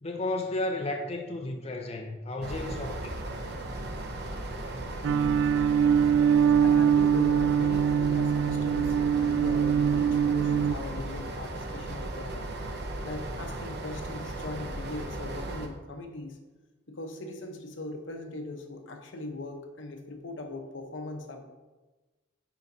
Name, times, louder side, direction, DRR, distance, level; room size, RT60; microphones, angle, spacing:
voice 1, 0.0-3.4, left 2 dB, 35° left, 0.5 m, -33 dB
sound 1, 2.4-15.7, right 1 dB, 60° right, 0.8 m, -36 dB
sound 2, 5.0-10.8, right 7 dB, 85° right, 0.3 m, -23 dB
voice 2, 6.6-12.5 13.0-16.4 16.9-21.4, left 2 dB, 75° left, 0.9 m, -40 dB
10.5 x 4.7 x 2.7 m
head